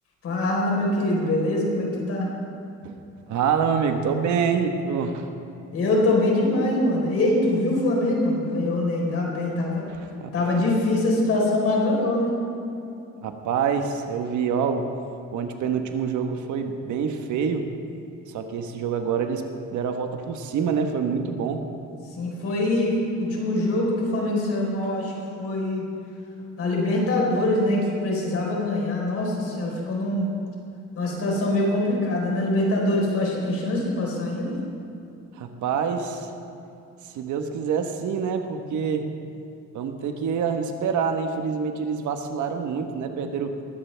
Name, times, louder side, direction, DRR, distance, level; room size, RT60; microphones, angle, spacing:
voice 1, 0.2-2.3 5.7-9.8 10.3-12.4 22.2-25.1 25.4-25.8 26.6-30.3 30.9-34.6, left 1 dB, 55° left, -2 dB, 4.2 m, -23 dB
voice 2, 3.3-5.3 9.9-10.3 13.2-14.9 15.3-17.7 18.3-19.4 19.7-21.6 35.3-36.3 37.1-39.1 39.7-43.5, right 6 dB, 80° right, 6 dB, 1.3 m, -26 dB
22.0 x 15.5 x 3.4 m, 2.6 s
cardioid pair, 180°, 29 cm